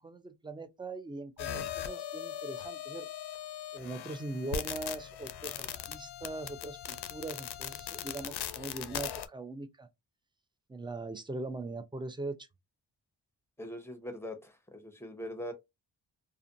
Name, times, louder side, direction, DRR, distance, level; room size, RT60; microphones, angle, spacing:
voice 1, 0.0-3.1 3.7-9.9 10.7-12.4, right 2 dB, 10° right, 0.5 m, -41 dB
sound 1, 1.4-9.3, left 10 dB, 60° left, 0.5 m, -40 dB
voice 2, 13.6-15.5, equal, 5° left, 0.9 m, -42 dB
2.4 x 2.2 x 2.6 m
supercardioid pair, 40°, 46 cm